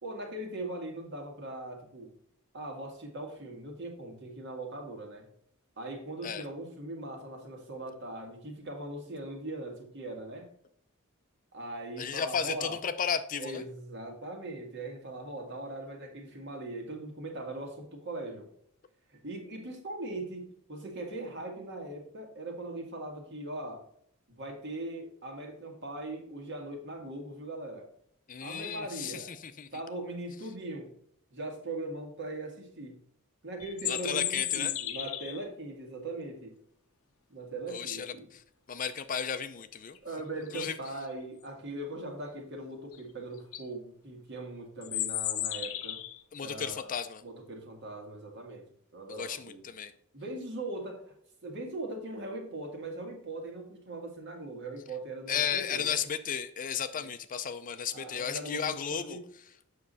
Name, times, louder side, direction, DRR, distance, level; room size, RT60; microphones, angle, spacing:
voice 1, 0.0-2.1 2.5-5.3 5.8-10.5 11.5-12.8 13.4-18.5 19.1-23.8 24.3-27.9 28.4-29.3 29.7-30.9 31.3-33.0 33.4-36.6 37.3-38.3 40.0-46.0 46.4-46.9 47.2-48.7 48.9-49.6 50.1-51.1 51.4-56.0 56.9-57.1 57.9-59.2, right 2 dB, 55° right, 3 dB, 1.9 m, -40 dB
voice 2, 12.0-13.6 28.3-29.7 33.9-34.7 37.7-38.4 38.7-40.0 40.5-40.8 46.3-47.2 49.1-49.9 55.3-59.2, left 7 dB, 40° left, 11 dB, 0.5 m, -34 dB
sound 1, 33.6-35.4 39.9-40.0 40.5-40.9 42.9-43.0 43.4-43.6 44.8-46.2, left 13 dB, 80° left, 0.7 m, -34 dB
7.6 x 6.0 x 4.0 m, 0.69 s
head